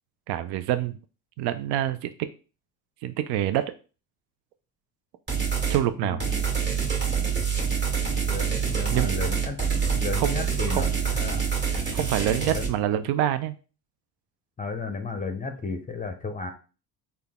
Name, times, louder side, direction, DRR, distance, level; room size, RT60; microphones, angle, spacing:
voice 1, 0.3-1.0 1.4-2.1 3.0-3.6 5.7-6.2 8.9-9.2 10.2-10.4 10.7-10.9 11.9-13.6, right 12 dB, 70° right, 12 dB, 0.5 m, -26 dB
sound 1, 5.3-5.8 6.2-12.7, right 6 dB, 25° right, 1.6 m, -26 dB
voice 2, 6.0-6.4 8.3-9.6 10.0-11.4 12.5-12.6 14.6-16.5, left 4 dB, 20° left, 6 dB, 0.5 m, -33 dB
3.8 x 2.3 x 3.5 m, 0.34 s
supercardioid pair, 85°, 42 cm